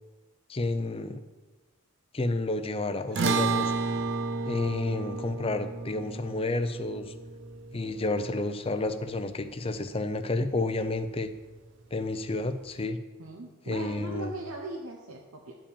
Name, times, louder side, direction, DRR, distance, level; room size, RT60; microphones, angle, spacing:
voice 1, 0.5-1.2 2.1-3.7 4.4-7.1 7.7-11.3 11.9-13.0 13.7-14.3, left 2 dB, 25° left, 10 dB, 0.5 m, -30 dB
sound 1, 3.2-9.7, right 4 dB, 55° right, 0.5 m, -32 dB
voice 2, 13.2-15.6, right 2 dB, 90° right, -1 dB, 1.0 m, -39 dB
10.5 x 5.0 x 7.1 m, 1.2 s
head